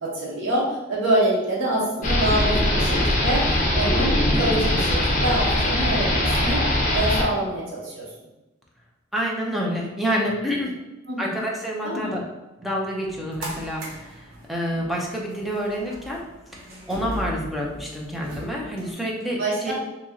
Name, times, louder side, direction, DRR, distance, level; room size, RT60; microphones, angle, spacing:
voice 1, 0.0-6.6 6.9-8.1 11.1-11.4 11.8-12.1 19.4-19.7, right 1 dB, 70° right, -6 dB, 1.0 m, -25 dB
sound 1, 2.0-7.2, left 1 dB, 40° left, 0.8 m, -21 dB
voice 2, 9.1-10.8 11.2-12.2 12.6-14.2 14.5-16.2 16.9-19.7, equal, ahead, -3 dB, 0.6 m, -28 dB
sound 2, 13.0-18.9, right 1 dB, 90° right, 0.9 m, -38 dB
2.9 x 2.8 x 3.6 m, 1.0 s
head